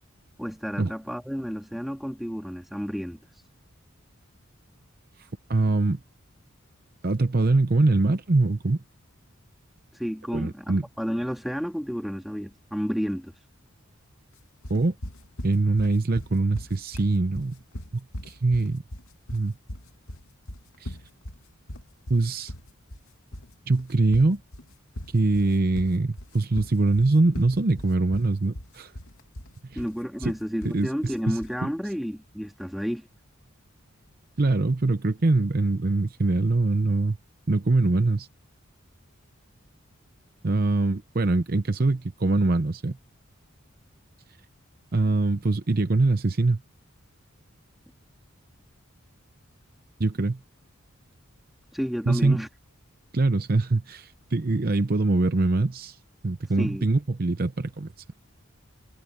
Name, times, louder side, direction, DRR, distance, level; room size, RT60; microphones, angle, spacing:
voice 1, 0.4-3.2 10.0-13.3 29.7-33.1 51.7-52.5 56.6-56.9, equal, ahead, 2.9 m, -31 dB
voice 2, 5.5-6.0 7.0-8.8 10.3-10.8 14.7-15.0 15.4-17.6 17.9-18.8 19.3-19.5 20.8-21.0 22.1-22.5 23.7-24.4 25.1-28.9 29.7-29.8 30.2-30.3 30.6-31.4 34.4-37.2 37.5-38.3 40.4-43.0 44.9-46.6 50.0-50.4 52.1-52.4 53.1-56.0 56.2-57.9, right 2 dB, 45° right, 0.7 m, -23 dB
sound 1, 14.6-31.6, equal, 85° left, 2.7 m, -40 dB
head